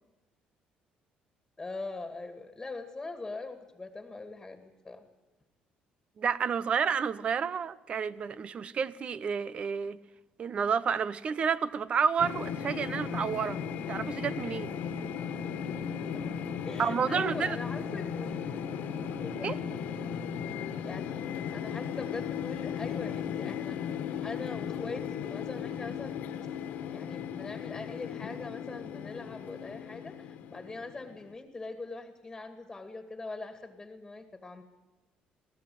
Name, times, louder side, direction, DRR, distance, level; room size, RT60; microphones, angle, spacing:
voice 1, 1.6-5.0 16.1-16.3 16.6-18.4 19.2-19.5 20.8-21.0 21.5-23.8 24.2-26.2 26.9-34.6, left 3 dB, 15° left, 2.2 m, -42 dB
voice 2, 6.2-10.0 10.4-13.6 13.9-14.7 16.8-17.6 19.4-19.5, right 6 dB, 45° right, 0.9 m, -30 dB
sound 1, 12.2-31.3, left 7 dB, 80° left, 1.7 m, -36 dB
23.0 x 17.5 x 7.9 m
cardioid pair, 115°, 3 cm